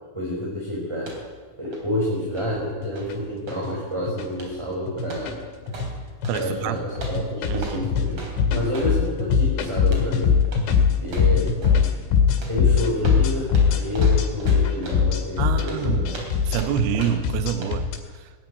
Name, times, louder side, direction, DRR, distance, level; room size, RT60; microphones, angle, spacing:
voice 1, 0.1-1.1 1.6-5.4 6.4-8.2 8.5-10.4 11.0-11.5 12.5-16.0, left 1 dB, 5° right, -4 dB, 4.4 m, -29 dB
sound 1, 1.0-1.4 1.7-3.7 4.3-4.7 5.0-6.4 7.0-9.0 9.8-10.1 10.5-10.7 11.0-11.9 12.4-15.1 15.6-17.4 17.6-17.8, right 3 dB, 35° right, 3.9 m, -38 dB
sound 2, 1.9-2.0 2.7-3.1 3.5-3.7 4.1-4.3 4.9-5.4 5.7-5.9 6.2-6.6 7.0-18.0, left 6 dB, 85° left, 4.8 m, -21 dB
voice 2, 6.3-6.9 7.5-7.9 15.4-18.3, right 9 dB, 75° right, 10 dB, 2.6 m, -27 dB
19.5 x 14.5 x 9.7 m, 1.5 s
omnidirectional pair, 5.3 m